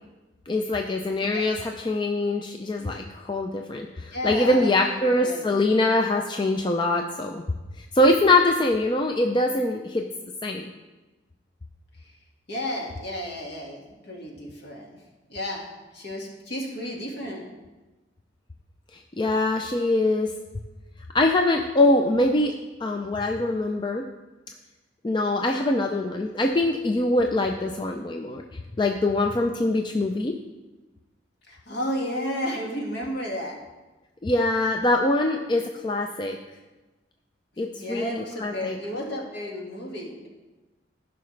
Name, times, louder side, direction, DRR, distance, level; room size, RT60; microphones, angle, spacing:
voice 1, 0.5-7.4 7.9-10.1 10.4-10.7 19.2-20.3 21.1-22.5 22.8-24.0 25.0-28.4 28.8-30.3 34.2-36.4 37.6-38.8, left 2 dB, 25° left, 3 dB, 0.4 m, -23 dB
voice 2, 4.1-5.5 12.5-15.0 15.3-15.6 15.9-17.6 31.5-33.6 37.7-40.3, equal, 60° left, -1 dB, 1.8 m, -32 dB
15.0 x 5.7 x 3.3 m, 1.2 s
head